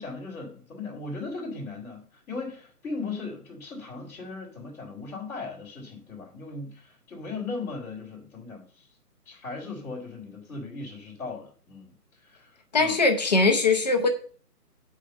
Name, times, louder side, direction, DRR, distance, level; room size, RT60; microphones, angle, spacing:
voice 1, 0.0-8.9 9.2-11.9 12.2-12.9, left 3 dB, 5° left, 2.4 m, -38 dB
voice 2, 12.7-14.1, left 3 dB, 25° left, 0.9 m, -21 dB
9.0 x 4.9 x 5.4 m
hypercardioid pair, 165°, 47 cm